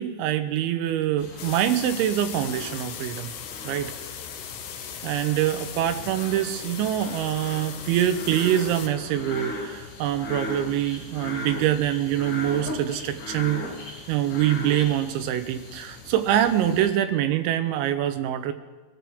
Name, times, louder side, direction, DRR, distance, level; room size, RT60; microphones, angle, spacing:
voice 1, 0.0-3.3 3.6-3.9 5.0-13.7 14.1-18.5, right 11 dB, 80° right, 8 dB, 3.1 m, -25 dB
sound 1, 1.2-16.9, left 2 dB, 55° left, 5.5 m, -38 dB
sound 2, 1.4-8.9, left 8 dB, 90° left, 3.7 m, -38 dB
23.5 x 13.5 x 3.5 m, 1.3 s
omnidirectional pair, 5.5 m